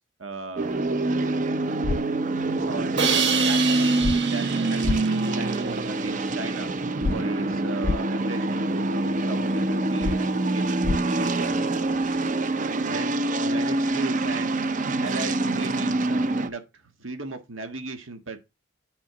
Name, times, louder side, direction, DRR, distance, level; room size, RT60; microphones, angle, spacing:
voice 1, 0.2-0.8 1.2-1.4 2.2-6.7 7.1-11.7 12.8-18.4, right 3 dB, 90° right, 1.5 m, -37 dB
sound 1, 0.6-16.5, right 2 dB, 40° right, 0.5 m, -25 dB
sound 2, 1.8-2.0 4.0-4.2 4.8-5.0 7.0-7.2 7.8-8.0 10.0-10.2 10.8-11.0, left 3 dB, 70° left, 0.5 m, -25 dB
Crash cymbal, 3.0-6.0, right 6 dB, 60° right, 1.1 m, -27 dB
8.8 x 5.1 x 3.9 m
head